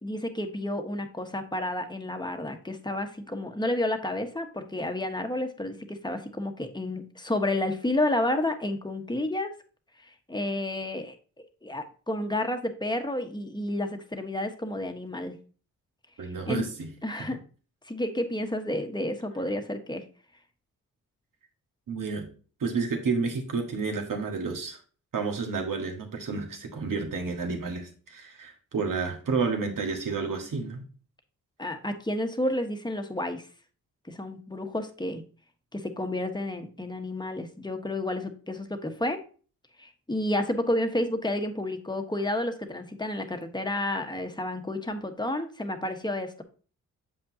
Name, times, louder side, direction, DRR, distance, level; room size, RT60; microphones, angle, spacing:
voice 1, 0.0-9.5 10.0-15.3 16.2-16.6 17.0-17.4 17.8-20.0 31.6-33.5 34.1-35.2 35.7-39.2 39.8-46.4, left 1 dB, 10° left, 6 dB, 1.3 m, -31 dB
voice 2, 16.2-16.9 17.2-17.3 21.9-22.3 22.6-24.8 25.1-30.9, right 4 dB, 60° right, 3 dB, 1.7 m, -30 dB
7.5 x 5.3 x 2.8 m, 0.38 s
supercardioid pair, 45°, 36 cm